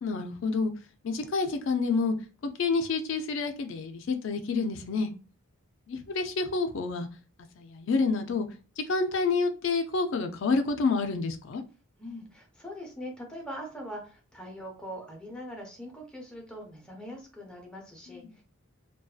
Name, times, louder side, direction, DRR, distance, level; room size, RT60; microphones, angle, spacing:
voice 1, 0.0-0.7 1.0-2.1 2.6-5.1 5.9-7.1 7.6-8.5 8.8-11.6 18.3-18.4, left 4 dB, 60° left, 0.4 m, -28 dB
voice 2, 12.0-18.4, equal, 5° left, 0.6 m, -42 dB
2.6 x 2.2 x 2.3 m
head